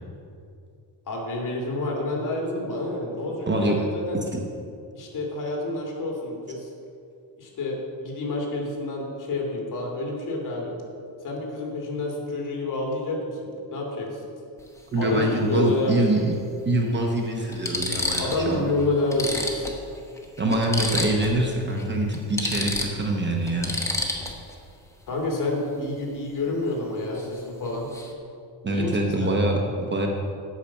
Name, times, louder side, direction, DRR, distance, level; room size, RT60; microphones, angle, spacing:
voice 1, 1.1-4.2 4.9-6.7 7.4-10.8 11.2-14.2 15.0-16.2 18.2-19.7 25.1-27.9 28.7-29.4, left 2 dB, 45° left, -1 dB, 2.2 m, -29 dB
voice 2, 3.5-3.8 14.9-16.4 16.7-18.7 20.4-23.7 28.6-30.1, right 1 dB, 25° right, 1 dB, 0.8 m, -24 dB
sound 1, 14.6-14.8 16.3-16.4 17.0-17.1 17.5-18.5 18.8-18.9 19.1-21.4 21.7-21.8 22.1-24.5 27.1-27.4 27.6-28.1, left 2 dB, 5° left, 0.9 m, -30 dB
8.6 x 5.8 x 7.0 m, 2.5 s
cardioid pair, 150°, 43 cm